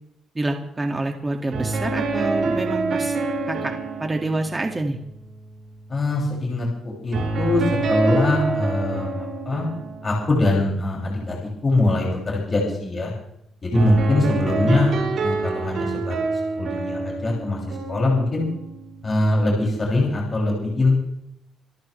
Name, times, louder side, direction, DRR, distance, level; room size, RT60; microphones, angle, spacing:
voice 1, 0.3-3.2 3.5-3.7 4.0-5.0 14.6-15.2, right 2 dB, 20° right, 3 dB, 2.1 m, -27 dB
sound 1, 1.5-6.3 7.1-10.9 13.7-19.3, right 3 dB, 60° right, 5.7 m, -27 dB
voice 2, 5.9-6.7 7.0-7.6 7.9-9.1 9.4-9.7 10.0-11.4 11.6-13.1 13.6-16.1 16.6-18.4 19.0-21.0, left 2 dB, 35° left, -2 dB, 6.6 m, -22 dB
27.0 x 13.5 x 3.3 m, 0.75 s
cardioid pair, 90°, 0 cm